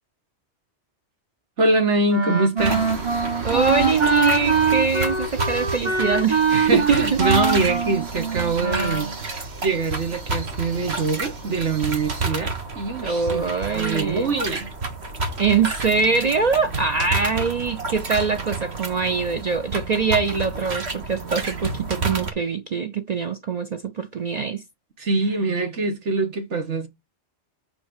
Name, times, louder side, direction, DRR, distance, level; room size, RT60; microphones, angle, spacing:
voice 1, 1.6-2.9 6.5-9.1 9.6-14.7 25.0-26.9, right 3 dB, 85° right, 2.0 m, -24 dB
Wind instrument woodwind instrument, 2.1-9.2, right 4 dB, 25° right, 1.1 m, -23 dB
sound 1, 2.6-22.3, right 3 dB, 65° right, 1.8 m, -30 dB
voice 2, 3.4-7.2 13.0-14.3 15.4-24.6, right 5 dB, 50° right, 0.5 m, -23 dB
6.2 x 4.9 x 6.4 m
omnidirectional pair, 1.2 m